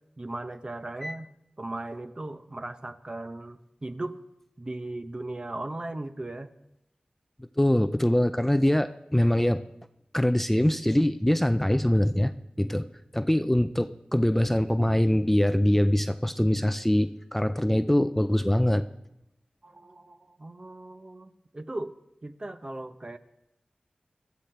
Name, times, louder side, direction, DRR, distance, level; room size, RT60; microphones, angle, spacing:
voice 1, 0.2-1.3 1.6-4.2 4.6-6.5 19.6-21.9 22.2-23.2, right 2 dB, 35° right, 9 dB, 0.8 m, -37 dB
voice 2, 7.6-9.6 10.1-12.3 12.6-12.9 13.1-18.8, left 1 dB, 10° left, 10 dB, 0.4 m, -23 dB
22.0 x 13.5 x 3.4 m, 0.85 s
wide cardioid pair, 60°, 3 cm